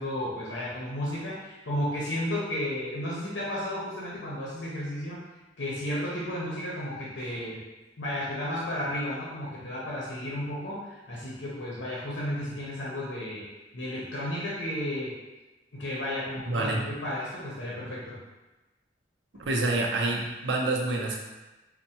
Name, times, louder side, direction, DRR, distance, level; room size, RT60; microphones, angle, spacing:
voice 1, 0.0-5.2 5.6-7.6 8.0-13.4 13.7-15.1 15.7-18.2, left 1 dB, 85° left, -6 dB, 0.7 m, -33 dB
voice 2, 16.5-16.8 19.5-21.2, right 2 dB, 75° right, -1 dB, 0.5 m, -27 dB
4.3 x 2.1 x 2.8 m, 1.1 s
head